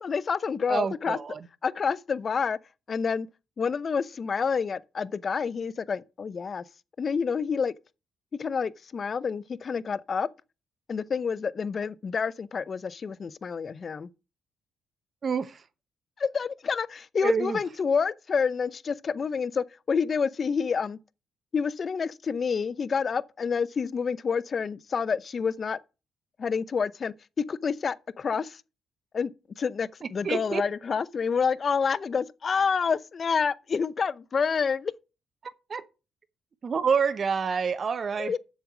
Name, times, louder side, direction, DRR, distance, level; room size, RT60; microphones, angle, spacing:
voice 1, 0.0-1.2 1.6-2.6 2.9-3.3 3.6-6.6 7.0-7.7 8.4-10.3 10.9-14.1 16.2-21.0 21.5-25.8 26.4-28.6 29.1-29.3 29.6-34.9 38.2-38.4, left 6 dB, 40° left, 0.6 m, -28 dB
voice 2, 0.7-1.5 15.2-15.6 17.2-17.6 30.2-30.6 35.4-35.8 36.6-38.4, right 6 dB, 45° right, 0.9 m, -28 dB
7.3 x 7.1 x 6.1 m
cardioid pair, 90°, 0 cm